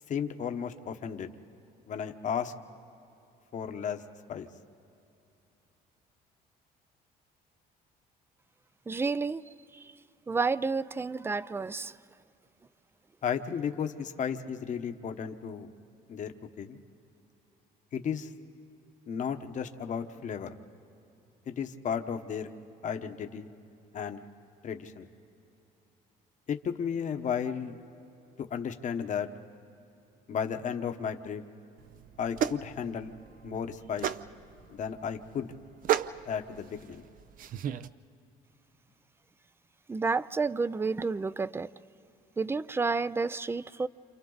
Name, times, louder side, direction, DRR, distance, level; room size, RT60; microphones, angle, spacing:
voice 1, 0.1-1.3 1.9-2.5 3.5-4.0 4.3-4.5 13.2-15.7 16.1-16.8 17.9-18.3 19.1-20.5 21.5-22.5 22.8-23.5 23.9-24.2 24.6-25.1 26.5-27.8 28.4-29.3 30.3-31.4 32.2-33.1 33.4-34.1 34.7-35.5 36.3-37.0, left 7 dB, 45° left, 1.1 m, -34 dB
voice 2, 8.9-9.9 10.3-12.0 39.9-41.7 42.4-43.9, right 4 dB, 15° right, 0.4 m, -30 dB
sound 1, 31.8-37.9, right 10 dB, 55° right, 0.6 m, -34 dB
29.0 x 28.0 x 4.0 m
cardioid pair, 110°, 17 cm